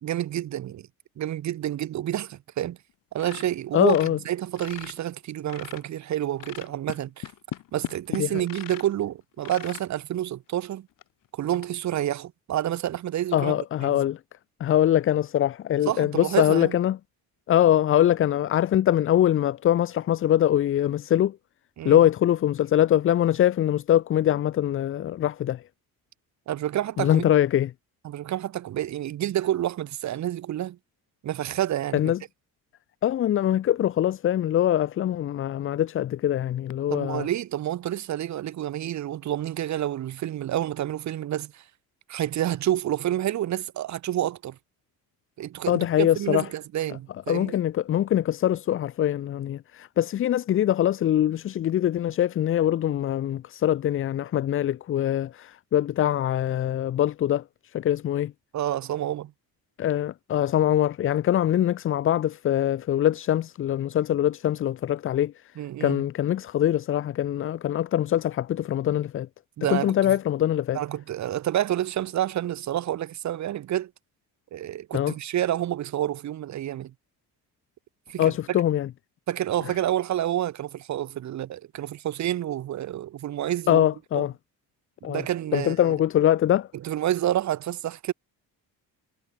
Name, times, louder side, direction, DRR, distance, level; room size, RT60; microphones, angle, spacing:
voice 1, 0.0-0.9 1.2-2.8 3.1-7.3 7.7-10.9 11.3-13.5 13.8-14.0 15.8-16.8 21.8-22.0 26.5-27.3 28.0-30.8 31.2-32.1 36.9-41.6 42.1-44.6 45.4-47.6 58.5-59.3 65.6-66.0 69.6-70.2 70.7-73.9 74.5-76.9 78.1-78.6 79.3-83.9 84.1-84.3 85.1-85.9 86.7-88.1, right 12 dB, 50° right, 1.0 m, -29 dB
sound 1, 3.2-5.0 5.3-6.0 6.4-8.9 9.4-9.9 10.5-10.6 11.0-11.1 11.5-11.7, left 13 dB, 60° left, 1.5 m, -38 dB
voice 2, 3.7-4.2 8.2-8.3 13.3-14.2 14.6-17.0 17.5-21.4 21.8-25.6 27.0-27.7 31.9-32.2 33.0-37.3 45.7-46.5 47.3-57.4 57.7-58.3 59.8-65.3 65.8-69.3 69.7-70.8 74.9-75.1 78.2-78.9 83.7-84.3 85.0-85.2 85.5-86.7, left 11 dB, 35° left, 0.5 m, -23 dB
cardioid pair, 160°, 37 cm